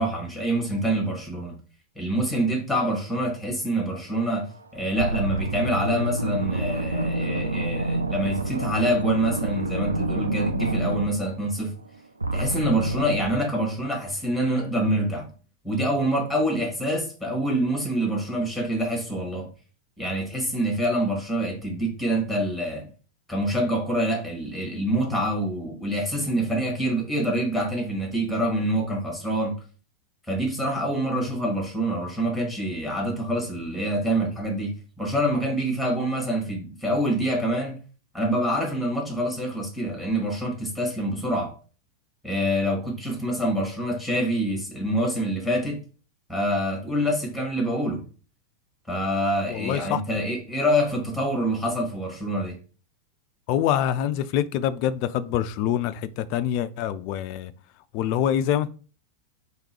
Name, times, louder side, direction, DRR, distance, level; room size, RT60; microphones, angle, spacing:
voice 1, 0.0-1.5 2.0-4.5 4.7-11.7 12.3-15.3 15.6-19.5 20.0-22.9 23.3-29.6 30.3-37.8 38.1-41.5 42.2-45.8 46.3-48.0 48.9-52.6, right 1 dB, 5° right, 1.7 m, -26 dB
sound 1, 4.3-4.6 4.9-11.9 12.2-13.3, right 2 dB, 80° right, 0.4 m, -28 dB
voice 2, 49.5-50.2 53.5-57.5 57.9-58.7, left 10 dB, 45° left, 0.3 m, -25 dB
3.7 x 3.0 x 4.4 m
figure-of-eight pair, 90°, 0 cm